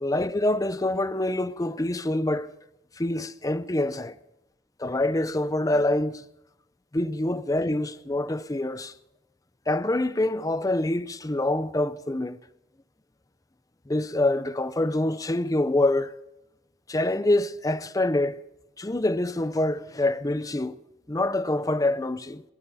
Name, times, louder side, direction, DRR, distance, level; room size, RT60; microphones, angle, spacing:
voice 1, 0.0-2.5 3.0-4.2 4.8-6.3 6.9-8.9 9.7-12.4 13.9-16.1 16.9-18.4 18.8-20.8 21.1-22.4, left 1 dB, 20° left, 0.6 m, -26 dB
22.0 x 16.0 x 4.2 m
head